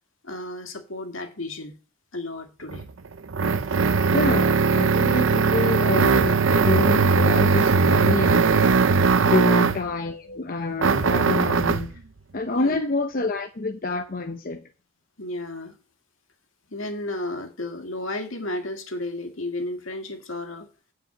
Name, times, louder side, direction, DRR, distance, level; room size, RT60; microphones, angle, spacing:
voice 1, 0.2-1.8 2.1-2.8 9.3-9.7 12.5-12.8 15.2-15.8 16.7-20.7, left 2 dB, 75° left, 2.0 m, -33 dB
sound 1, 2.7-9.9 10.8-11.9, right 4 dB, 65° right, 0.6 m, -20 dB
voice 2, 4.1-8.8 9.2-11.9 12.3-14.6, left 3 dB, 45° left, 0.8 m, -27 dB
9.5 x 4.8 x 7.7 m
head